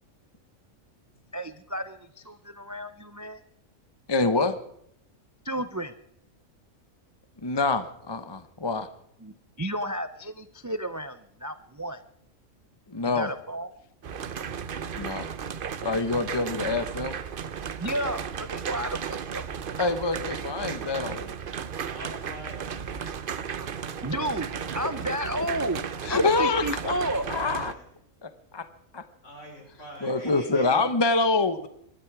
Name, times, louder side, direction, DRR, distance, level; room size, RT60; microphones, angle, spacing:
voice 1, 1.3-3.4 5.4-5.9 9.2-12.0 13.1-13.7 17.8-19.4 24.0-24.5 24.7-25.8 26.1-27.3, right 1 dB, 25° right, 11 dB, 0.3 m, -32 dB
voice 2, 4.1-4.6 7.4-8.9 12.9-13.3 14.9-15.3 15.8-17.1 19.8-21.3 22.9-23.1 26.0-27.0 27.3-27.7 28.2-28.7 28.9-29.0 30.0-31.7, left 3 dB, 25° left, 11 dB, 0.7 m, -26 dB
sound 1, 14.0-27.7, right 7 dB, 50° right, 0.8 m, -35 dB
voice 3, 21.9-22.8 26.9-27.8 29.2-30.8, equal, 60° left, 1 dB, 5.6 m, -43 dB
24.5 x 12.5 x 4.7 m, 0.70 s
omnidirectional pair, 1.4 m